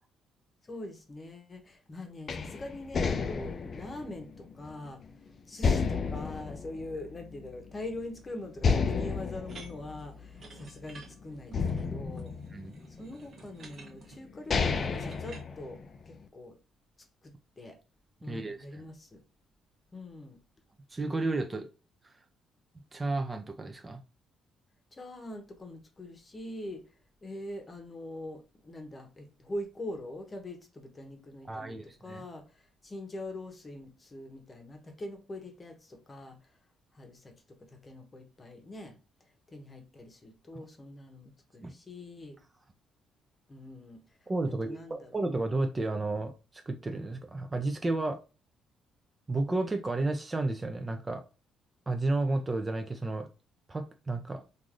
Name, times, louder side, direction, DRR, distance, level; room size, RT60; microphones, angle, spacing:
voice 1, 0.6-5.0 5.5-12.3 13.0-15.8 16.1-16.6 17.2-17.8 18.2-19.2 19.9-20.4 24.9-26.8 27.2-36.5 36.9-37.3 37.6-39.0 39.5-42.4 43.5-44.0 44.5-45.2, left 1 dB, 25° left, 0.8 m, -43 dB
sound 1, 2.3-5.1 5.6-7.6 7.9-8.0 8.6-11.0 11.5-13.1 13.9-14.0 14.3-16.1, left 5 dB, 45° left, 0.4 m, -31 dB
sound 2, 9.4-15.4, right 4 dB, 50° right, 1.0 m, -52 dB
voice 2, 18.3-18.8 20.9-21.7 22.9-24.0 31.5-32.2 41.6-41.7 44.3-48.2 49.3-51.2 51.9-53.3 53.7-54.4, right 2 dB, 25° right, 0.4 m, -32 dB
3.2 x 2.5 x 2.5 m
cardioid pair, 90°, 0 cm